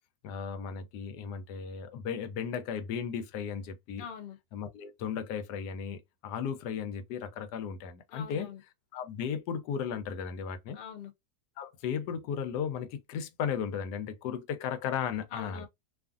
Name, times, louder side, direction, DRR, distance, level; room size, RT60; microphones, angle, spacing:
voice 1, 0.2-4.0 4.5-8.5 8.9-10.8 11.6-15.7, left 7 dB, 85° left, 1.2 m, -35 dB
voice 2, 4.0-4.4 8.1-8.6 10.7-11.1 15.3-15.7, left 7 dB, 60° left, 0.6 m, -43 dB
2.7 x 2.5 x 2.3 m
omnidirectional pair, 1.7 m